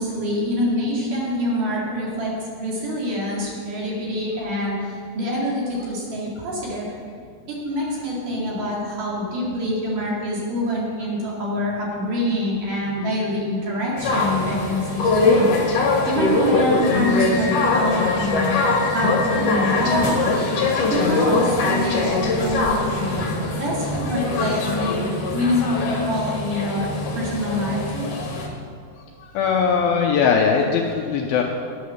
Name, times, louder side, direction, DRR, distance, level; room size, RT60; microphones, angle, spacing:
voice 1, 0.0-2.3 2.6-6.9 7.5-18.6 18.9-20.2 20.5-20.6 20.9-26.9 27.1-28.1, left 1 dB, 55° right, -5 dB, 3.7 m, -25 dB
sound 1, 14.0-28.5, left 3 dB, 55° left, 1.9 m, -22 dB
voice 2, 29.4-31.4, left 6 dB, 80° left, 1 dB, 2.2 m, -19 dB
10.5 x 9.3 x 6.4 m, 2.2 s
omnidirectional pair, 4.9 m